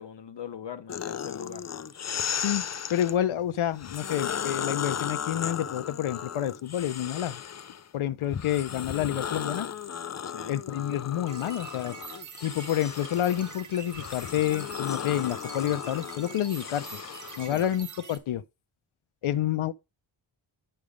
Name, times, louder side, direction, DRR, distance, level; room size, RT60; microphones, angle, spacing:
voice 1, 0.0-1.7 10.2-10.6 17.4-17.6, left 8 dB, 60° left, 1.0 m, -41 dB
sound 1, 0.9-3.1 3.7-7.8 8.3-17.4, left 8 dB, 35° left, 0.4 m, -35 dB
voice 2, 2.3-7.4 7.9-9.7 10.5-12.0 12.4-17.0 17.4-18.4 19.2-19.7, left 11 dB, 80° left, 0.6 m, -29 dB
sound 2, 11.3-18.2, right 5 dB, 40° right, 1.1 m, -45 dB
9.6 x 3.3 x 5.0 m
wide cardioid pair, 140°, 47 cm